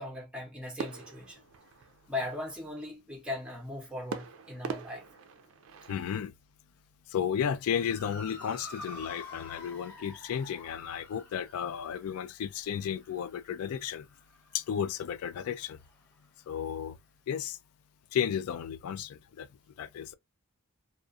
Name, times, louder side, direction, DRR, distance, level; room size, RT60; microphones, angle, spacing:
voice 1, 0.0-1.4 2.1-5.1, left 2 dB, 5° right, 0.8 m, -38 dB
sound 1, 0.8-2.3 4.1-6.2, right 5 dB, 65° right, 0.4 m, -42 dB
voice 2, 5.9-6.3 7.1-14.1 14.5-15.8 16.5-16.9 17.3-17.6 18.1-19.5 19.8-20.2, left 8 dB, 85° left, 0.3 m, -33 dB
Motor vehicle (road) / Siren, 7.6-16.1, left 2 dB, 50° left, 1.1 m, -49 dB
2.4 x 2.4 x 2.4 m
head